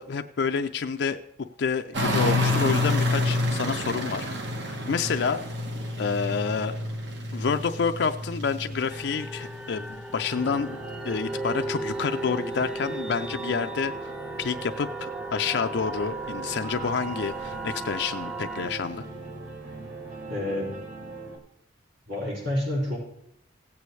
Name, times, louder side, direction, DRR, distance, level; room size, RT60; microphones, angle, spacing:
voice 1, 0.0-4.3 4.7-5.4 6.0-6.7 7.3-10.8 11.0-13.9 14.4-19.0, left 5 dB, 60° left, 7 dB, 0.4 m, -28 dB
sound 1, 1.9-13.9 14.2-19.1 19.7-19.8, left 1 dB, 60° right, 1.3 m, -31 dB
sound 2, 8.9-18.7, right 2 dB, 5° right, 0.4 m, -36 dB
sound 3, 10.3-21.4, right 3 dB, 45° right, 2.6 m, -40 dB
voice 2, 20.3-20.8 22.1-23.0, left 1 dB, 75° right, -6 dB, 4.9 m, -29 dB
16.5 x 8.3 x 3.2 m, 0.76 s
head